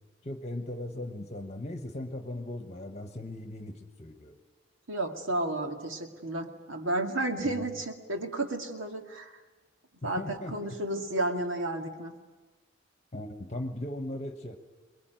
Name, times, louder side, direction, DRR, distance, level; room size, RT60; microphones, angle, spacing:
voice 1, 0.2-4.4 7.4-7.7 10.0-10.8 13.1-14.6, left 1 dB, 35° left, 6 dB, 1.2 m, -38 dB
voice 2, 4.9-9.4 10.0-12.1, right 2 dB, 80° right, 4 dB, 2.1 m, -32 dB
24.0 x 21.5 x 9.2 m, 1.3 s
head